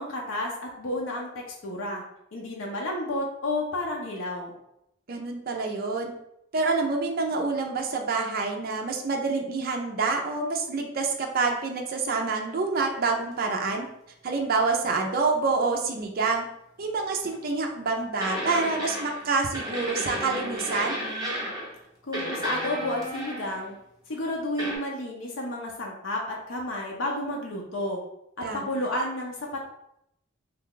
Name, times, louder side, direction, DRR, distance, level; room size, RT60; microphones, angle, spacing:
voice 1, 0.0-2.0 2.3-4.6 22.0-23.8 24.1-28.0 28.4-29.7, left 1 dB, 70° left, -1 dB, 0.7 m, -31 dB
voice 2, 5.1-6.1 6.5-13.9 14.2-16.4 16.8-21.0 28.4-28.9, right 4 dB, 50° right, 1 dB, 0.5 m, -27 dB
sound 1, 17.3-17.4 18.2-19.3 19.5-21.8 22.1-23.7 24.6-24.8, equal, 20° right, 1.0 m, -33 dB
3.2 x 2.3 x 3.7 m, 0.78 s
head